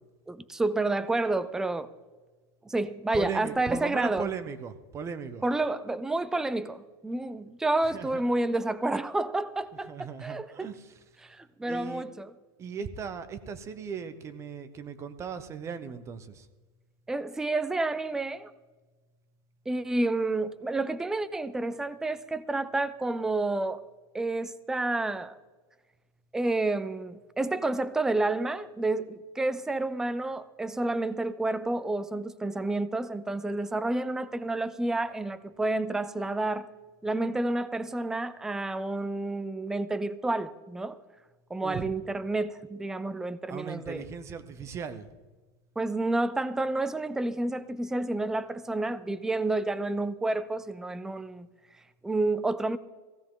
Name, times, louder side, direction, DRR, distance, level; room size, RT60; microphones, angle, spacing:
voice 1, 0.3-1.9 2.7-4.3 5.4-10.7 11.2-12.3 17.1-18.5 19.7-23.8 24.1-25.4 26.3-36.7 37.0-41.0 41.5-44.1 45.8-51.5 52.0-52.8, right 2 dB, 5° right, 0.4 m, -30 dB
voice 2, 3.1-5.4 7.8-8.2 9.7-11.0 11.7-12.0 12.6-16.5 41.6-41.9 43.5-45.1, right 6 dB, 25° right, 0.9 m, -38 dB
16.5 x 15.5 x 3.8 m
supercardioid pair, 155°, 12 cm